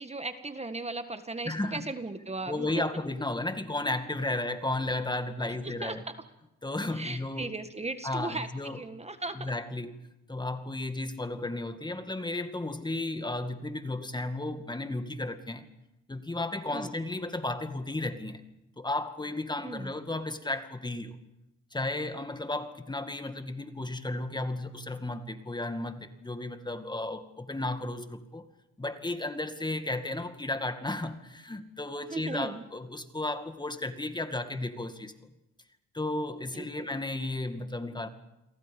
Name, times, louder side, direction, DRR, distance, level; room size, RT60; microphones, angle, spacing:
voice 1, 0.0-2.7 5.6-6.1 6.9-9.4 16.7-16.9 19.6-19.9 32.1-32.6 36.5-36.9, right 3 dB, 20° right, 9 dB, 1.7 m, -37 dB
voice 2, 1.4-1.9 2.5-6.0 6.6-7.5 8.0-8.8 9.3-9.9 10.3-15.7 16.1-18.4 18.8-21.2 21.7-28.5 28.8-35.3 35.9-38.1, left 2 dB, 15° left, 8 dB, 2.2 m, -34 dB
29.5 x 23.0 x 5.3 m, 0.92 s
cardioid pair, 90°, 30 cm